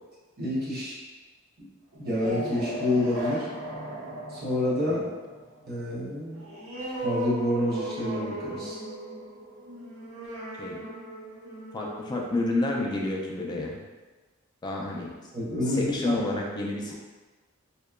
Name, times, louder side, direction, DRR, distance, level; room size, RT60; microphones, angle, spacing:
voice 1, 0.4-1.0 1.6-1.7 2.0-3.5 4.3-5.1 5.7-6.4 7.0-8.8 15.3-16.2, left 1 dB, 50° right, -8 dB, 0.7 m, -28 dB
sound 1, 1.9-13.1, right 1 dB, 85° right, 0.8 m, -37 dB
voice 2, 11.7-13.8 14.6-15.1 15.7-16.9, left 2 dB, 20° left, -2 dB, 0.3 m, -29 dB
2.8 x 2.2 x 2.2 m, 1.3 s
head